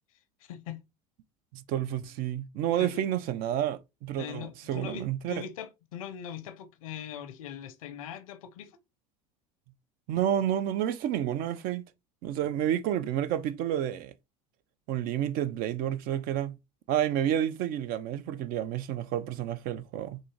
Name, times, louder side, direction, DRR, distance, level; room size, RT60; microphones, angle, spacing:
voice 1, 0.4-0.8 2.8-3.0 4.2-8.8, left 8 dB, 85° left, 0.6 m, -41 dB
voice 2, 1.5-5.4 10.1-11.8 12.2-14.1 14.9-16.6 16.9-20.2, right 11 dB, 60° right, 0.5 m, -30 dB
3.7 x 2.7 x 3.0 m
hypercardioid pair, 90°, 17 cm